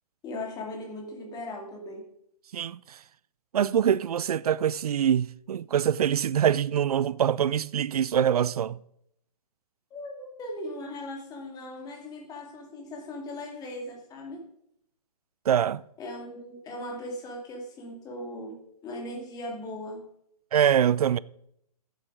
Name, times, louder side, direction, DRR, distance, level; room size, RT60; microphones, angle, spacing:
voice 1, 0.2-2.0 9.9-14.4 16.0-20.0, left 1 dB, 20° left, 2.5 m, -38 dB
voice 2, 2.5-3.0 3.5-8.8 15.5-15.8 20.5-21.2, right 9 dB, 70° right, 0.5 m, -24 dB
12.5 x 7.8 x 5.0 m
hypercardioid pair, 135°, 20 cm